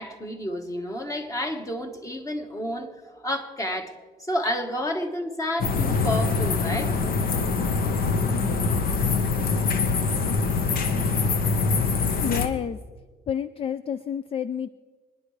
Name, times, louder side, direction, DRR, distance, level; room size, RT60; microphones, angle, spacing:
voice 1, 0.0-3.9 4.2-6.9, left 1 dB, 20° left, 5 dB, 1.5 m, -30 dB
sound 1, 5.6-12.5, left 4 dB, 60° left, 1.2 m, -24 dB
voice 2, 12.2-12.8 13.3-14.7, left 8 dB, 35° left, 14 dB, 0.4 m, -29 dB
25.0 x 10.5 x 3.3 m, 1.4 s
cardioid pair, 110°, 17 cm